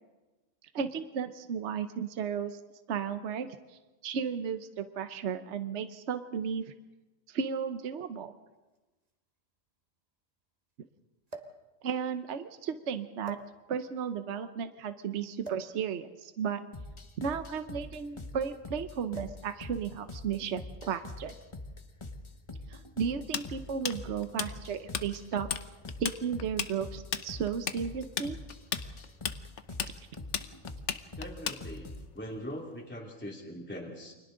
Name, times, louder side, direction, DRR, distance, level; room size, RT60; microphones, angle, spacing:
voice 1, 0.7-2.6 2.9-6.7 7.3-8.3 11.8-13.4 13.7-16.6 17.2-20.6 20.9-21.3 22.7-25.5 26.0-28.4 29.8-29.9, right 7 dB, 65° right, 9 dB, 1.1 m, -34 dB
sound 1, 7.5-7.6 8.7-8.8 9.1-9.2 11.3-11.7 12.5-12.7 13.2-13.9 15.4-15.8 16.9-18.5 19.1-19.5 19.8-20.0 20.8-21.2 22.1-22.4, right 2 dB, 30° right, 1.6 m, -45 dB
sound 2, 16.7-32.1, left 2 dB, 25° left, 1.2 m, -44 dB
Tools, 23.3-25.1 25.3-25.6 25.9-32.0, left 8 dB, 65° left, 1.1 m, -34 dB
voice 2, 31.2-34.1, equal, 10° left, -2 dB, 2.5 m, -41 dB
29.5 x 25.0 x 3.8 m, 1.1 s
omnidirectional pair, 1.4 m